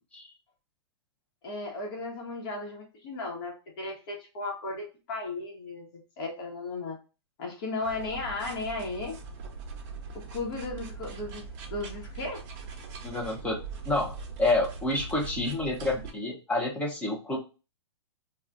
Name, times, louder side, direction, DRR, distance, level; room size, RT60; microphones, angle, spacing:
voice 1, 1.4-7.0 7.4-9.2 10.1-12.4, left 2 dB, 50° left, -2 dB, 1.1 m, -35 dB
sound 1, 7.8-16.1, right 4 dB, 40° right, 0.7 m, -41 dB
voice 2, 13.0-14.1 14.4-17.4, left 2 dB, 10° left, -2 dB, 0.8 m, -29 dB
2.3 x 2.3 x 3.9 m, 0.32 s
hypercardioid pair, 135°, 14 cm